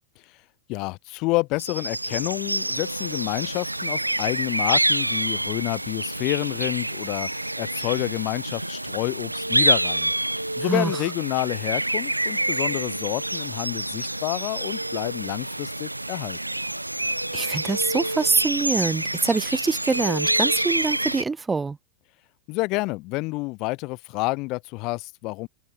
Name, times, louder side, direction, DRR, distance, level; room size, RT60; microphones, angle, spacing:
voice 1, 0.7-10.1 10.6-16.4 22.5-25.5, left 24 dB, 40° left, 2.1 m, -29 dB
sound 1, 1.6-21.2, right 1 dB, 85° right, 0.7 m, -27 dB
voice 2, 10.6-11.0 17.3-21.8, right 4 dB, 15° right, 2.4 m, -25 dB
open air
figure-of-eight pair, 90°, 0 cm